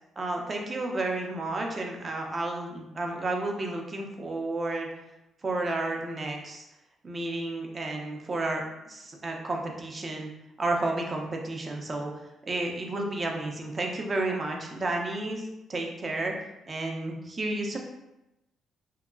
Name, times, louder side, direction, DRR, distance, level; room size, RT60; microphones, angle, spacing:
voice 1, 0.2-4.9 5.4-6.7 7.0-10.3 10.6-12.1 12.5-15.4 15.7-16.3 16.7-17.8, right 2 dB, 35° right, 1 dB, 0.5 m, -31 dB
2.7 x 2.3 x 2.4 m, 0.92 s
cardioid pair, 90°, 0 cm